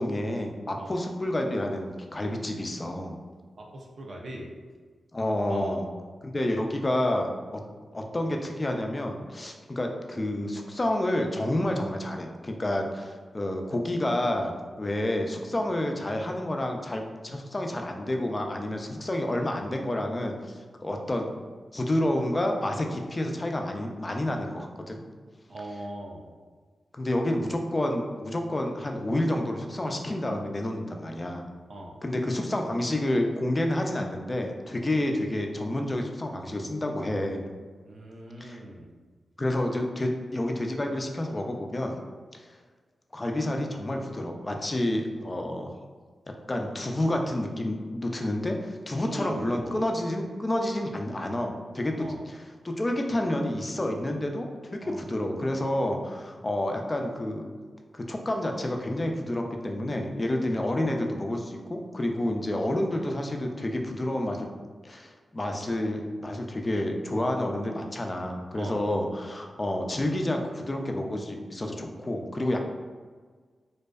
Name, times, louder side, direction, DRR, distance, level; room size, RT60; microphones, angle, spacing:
voice 1, 0.0-3.2 5.1-5.9 6.2-7.6 7.9-14.5 14.8-21.3 21.7-25.0 26.9-31.4 32.0-37.4 38.4-38.6 39.4-42.0 42.3-42.5 43.1-45.7 46.5-57.5 57.9-64.5 64.8-72.6, left 1 dB, 35° left, 3 dB, 0.4 m, -29 dB
voice 2, 3.6-4.5 5.5-5.8 25.5-26.3 31.7-32.0 37.8-38.9 48.9-49.9 52.0-52.2 54.8-55.0 68.5-68.8, right 1 dB, 65° right, -1 dB, 0.5 m, -39 dB
2.5 x 2.1 x 2.3 m, 1.5 s
cardioid pair, 45°, 0 cm